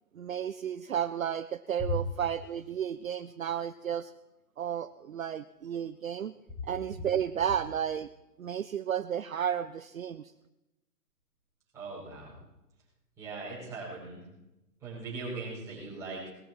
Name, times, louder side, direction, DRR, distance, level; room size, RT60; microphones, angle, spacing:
voice 1, 0.1-4.1 4.6-6.3 6.6-8.1 8.4-10.3, right 9 dB, 55° right, 12 dB, 0.5 m, -33 dB
voice 2, 11.7-12.4 13.2-14.2 14.8-16.3, right 1 dB, 5° right, -8 dB, 4.9 m, -39 dB
19.5 x 13.0 x 4.5 m, 0.95 s
hypercardioid pair, 165°, 49 cm